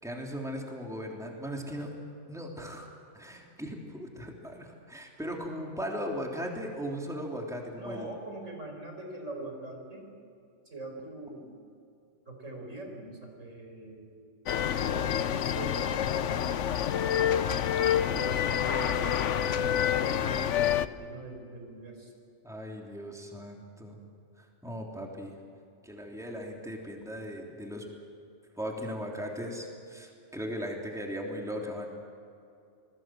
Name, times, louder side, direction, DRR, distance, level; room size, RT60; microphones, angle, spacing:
voice 1, 0.0-1.9 2.3-2.9 3.1-8.1 22.4-24.0 24.4-25.4 25.8-27.9 28.6-31.9, equal, ahead, 0 dB, 3.2 m, -38 dB
voice 2, 7.7-10.1 10.7-11.6 12.3-14.2 14.8-17.3 18.1-22.1, right 2 dB, 85° right, 2 dB, 5.3 m, -43 dB
sound 1, 14.5-20.9, left 9 dB, 75° left, 1.1 m, -27 dB
28.5 x 20.5 x 7.7 m, 2.5 s
omnidirectional pair, 1.3 m